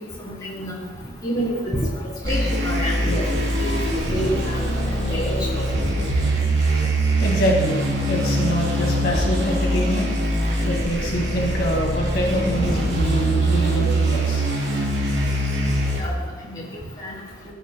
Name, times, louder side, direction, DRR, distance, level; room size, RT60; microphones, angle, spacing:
voice 1, 0.2-0.7 1.2-1.8 2.0-5.6 16.0-16.1 16.5-16.6 17.0-17.1, equal, 20° left, -6 dB, 3.2 m, -28 dB
sound 1, 2.2-16.0, right 1 dB, 85° right, 3.2 m, -22 dB
voice 2, 7.2-10.1 10.7-14.4, equal, 60° left, -3 dB, 2.1 m, -25 dB
17.5 x 9.2 x 2.2 m, 1.3 s
head